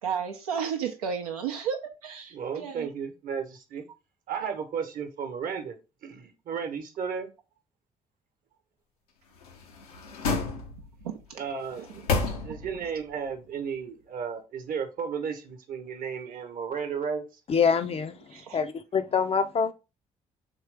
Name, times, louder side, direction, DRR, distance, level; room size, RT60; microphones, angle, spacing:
voice 1, 0.0-2.9 11.0-11.1 12.3-12.7 17.8-17.9 18.3-18.6, right 7 dB, 75° right, 0.6 m, -33 dB
voice 2, 2.3-3.8 4.3-5.8 6.0-7.3 11.3-17.2, right 6 dB, 50° right, 1.0 m, -34 dB
sound 1, 9.4-11.1 11.6-12.9 13.3-13.4, left 4 dB, 75° left, 0.7 m, -31 dB
voice 3, 17.5-18.2 18.5-19.7, left 6 dB, 30° left, 0.5 m, -25 dB
4.5 x 3.1 x 3.3 m
figure-of-eight pair, 40°, 19 cm